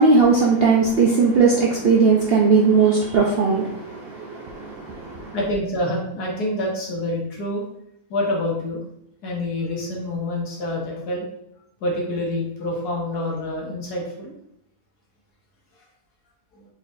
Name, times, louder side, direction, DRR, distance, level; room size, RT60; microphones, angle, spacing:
voice 1, 0.0-5.4, right 4 dB, 70° right, -2 dB, 0.5 m, -18 dB
voice 2, 5.3-7.6 8.1-8.8 9.2-11.3 11.8-14.3 16.5-16.7, left 1 dB, 85° left, -1 dB, 1.6 m, -27 dB
4.2 x 4.0 x 2.5 m, 0.76 s
omnidirectional pair, 1.6 m